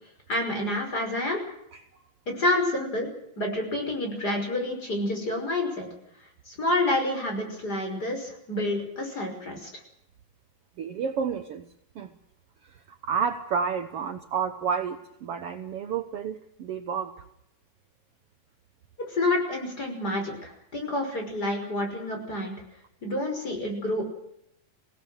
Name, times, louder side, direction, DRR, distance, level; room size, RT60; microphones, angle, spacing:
voice 1, 0.3-1.4 2.3-3.1 3.4-5.9 6.5-9.7 19.1-22.5 23.0-24.0, left 1 dB, 25° left, 3 dB, 6.1 m, -28 dB
voice 2, 10.8-11.7 11.9-12.1 12.6-17.1, right 6 dB, 75° right, 8 dB, 1.3 m, -30 dB
27.0 x 17.5 x 6.5 m, 0.78 s
omnidirectional pair, 4.1 m